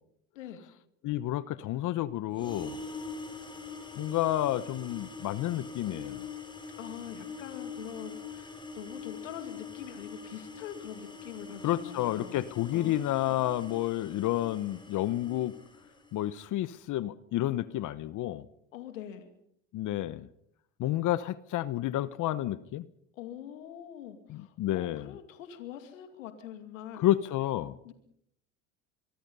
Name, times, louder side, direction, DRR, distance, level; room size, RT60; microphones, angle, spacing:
voice 1, 1.0-2.8 4.0-6.2 11.6-15.5 16.1-18.4 19.7-20.3 20.8-22.9 24.3-25.1 26.9-27.7, left 14 dB, 50° left, 16 dB, 1.0 m, -30 dB
sound 1, 2.3-16.3, left 4 dB, 10° left, 5.9 m, -44 dB
voice 2, 6.8-12.4 12.7-13.4 18.7-19.3 23.1-27.1 27.8-27.9, left 10 dB, 90° left, 8 dB, 2.6 m, -44 dB
24.5 x 23.5 x 5.5 m, 0.72 s
hypercardioid pair, 85°, 38 cm